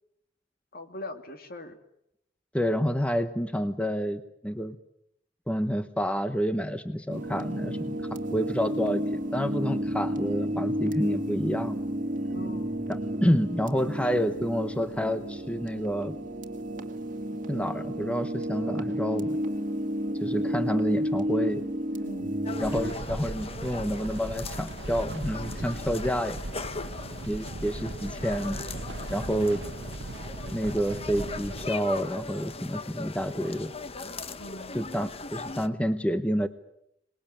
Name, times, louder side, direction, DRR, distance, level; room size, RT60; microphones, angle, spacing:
voice 1, 0.7-1.8 12.3-12.7 22.0-22.4 25.5-25.7 34.4-34.8, left 1 dB, 55° left, 7 dB, 2.6 m, -42 dB
voice 2, 2.5-4.8 5.5-7.8 8.3-9.0 9.3-11.8 12.9-16.2 17.5-19.4 20.2-21.6 22.6-26.4 27.3-28.6 29.1-29.6 30.5-33.7 34.7-36.5, equal, 5° left, 9 dB, 1.0 m, -29 dB
sound 1, 7.1-22.9, equal, 45° right, 2.0 m, -31 dB
sound 2, 22.5-35.7, left 3 dB, 35° left, 1.0 m, -39 dB
sound 3, 22.6-31.7, right 2 dB, 65° right, 1.1 m, -38 dB
26.5 x 20.5 x 8.9 m, 0.79 s
head